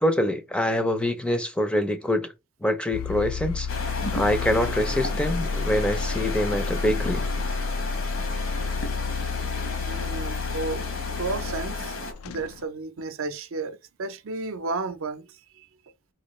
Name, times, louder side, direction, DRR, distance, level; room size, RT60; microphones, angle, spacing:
voice 1, 0.0-2.3 2.6-3.7 4.1-7.2, left 1 dB, 5° left, 0.4 m, -25 dB
sound 1, 2.9-12.6, left 5 dB, 85° left, 0.3 m, -30 dB
sound 2, 3.7-12.1, left 2 dB, 70° left, 0.9 m, -34 dB
voice 2, 9.9-10.8 11.1-11.9 12.2-15.3, right 3 dB, 75° right, 0.5 m, -32 dB
4.1 x 2.4 x 3.0 m
head